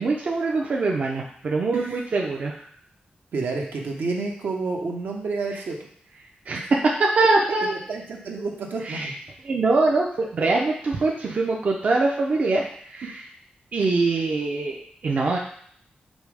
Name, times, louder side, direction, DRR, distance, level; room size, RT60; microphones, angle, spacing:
voice 1, 0.0-2.5 6.5-7.7 8.8-9.1 9.4-13.1 13.7-15.4, right 3 dB, 50° right, -1 dB, 0.4 m, -23 dB
voice 2, 1.7-2.0 3.3-5.8 7.6-9.1, right 3 dB, 75° right, 1 dB, 0.8 m, -29 dB
5.3 x 2.0 x 4.7 m, 0.63 s
wide cardioid pair, 150°, 3 cm